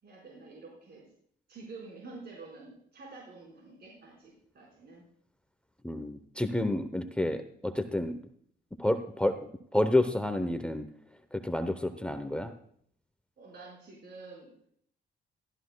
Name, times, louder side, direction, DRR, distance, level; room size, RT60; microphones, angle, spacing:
voice 1, 0.0-1.1 1.5-5.0 13.4-14.5, right 3 dB, 55° right, -3 dB, 4.8 m, -48 dB
voice 2, 5.8-8.2 8.8-10.9 11.3-12.5, left 1 dB, 5° left, 9 dB, 0.8 m, -29 dB
15.5 x 13.0 x 2.3 m, 0.63 s
cardioid pair, 90°, 20 cm